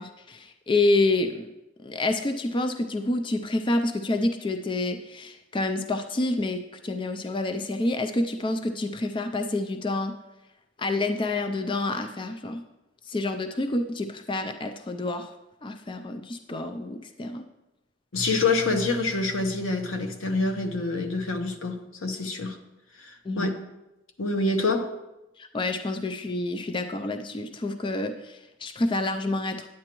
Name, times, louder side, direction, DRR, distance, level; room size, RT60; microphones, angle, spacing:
voice 1, 0.0-1.5 1.8-10.2 10.8-12.6 13.0-15.3 15.6-17.4 23.2-23.5 25.4-29.7, left 2 dB, 25° left, 7 dB, 0.3 m, -28 dB
voice 2, 18.1-22.6 23.0-23.6 24.2-24.9, left 3 dB, 90° left, 5 dB, 0.9 m, -26 dB
9.8 x 8.5 x 3.0 m, 0.98 s
head